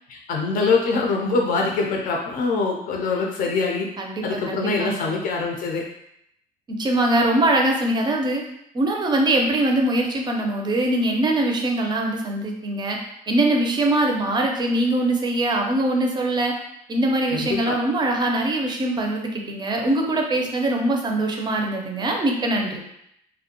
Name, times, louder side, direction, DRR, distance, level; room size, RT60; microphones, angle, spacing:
voice 1, 0.1-3.9 4.2-5.8 17.3-17.8, left 4 dB, 55° left, 0 dB, 0.5 m, -24 dB
voice 2, 4.0-5.2 6.7-8.4 8.7-13.0 13.3-16.5 16.9-22.8, right 1 dB, 25° right, 1 dB, 0.5 m, -22 dB
2.4 x 2.1 x 2.8 m, 0.76 s
cardioid pair, 110°, 17 cm